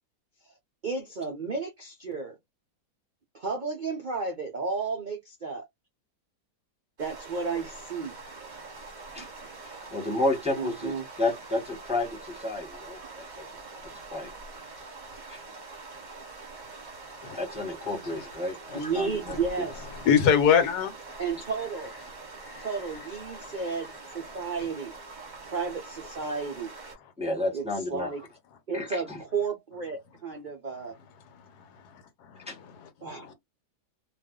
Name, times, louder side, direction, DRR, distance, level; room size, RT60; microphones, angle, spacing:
voice 1, 0.8-2.4 3.3-5.7 7.0-8.2 9.2-9.3 10.6-11.1 13.0-13.1 18.7-19.9 21.2-21.9 22.6-24.9 25.5-26.7 27.5-28.3 28.7-30.9 33.0-33.3, right 4 dB, 65° right, 0.4 m, -33 dB
sound 1, 7.0-27.0, right 3 dB, 35° right, 0.9 m, -44 dB
voice 2, 9.6-10.9 11.2-13.2 14.1-14.3 15.3-15.4 17.3-19.7 27.2-28.1 28.7-29.2 32.5-32.6, left 2 dB, 5° right, 0.7 m, -31 dB
voice 3, 20.1-20.9 22.4-22.7 32.5-32.6 33.3-33.4, left 7 dB, 75° left, 1.2 m, -22 dB
2.5 x 2.4 x 3.6 m
omnidirectional pair, 1.8 m